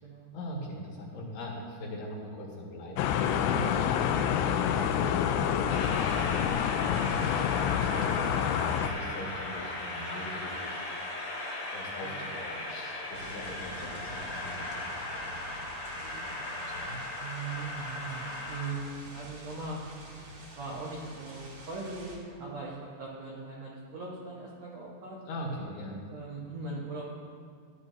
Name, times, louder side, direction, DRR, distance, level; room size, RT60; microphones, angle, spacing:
voice 1, 0.3-6.3 6.6-7.2 7.7-8.5 8.8-10.8 11.7-17.0 25.3-26.0, left 1 dB, 70° left, -4 dB, 3.8 m, -42 dB
sound 1, 3.0-8.9, left 9 dB, 85° left, 2.8 m, -27 dB
Train, 5.7-18.7, left 2 dB, 55° left, 1.1 m, -38 dB
sound 2, 13.1-22.2, right 1 dB, 45° right, 1.9 m, -48 dB
voice 2, 17.2-19.8 20.1-25.2 26.1-27.0, right 3 dB, 80° right, -5 dB, 1.5 m, -40 dB
14.5 x 11.0 x 2.7 m, 2.1 s
omnidirectional pair, 5.0 m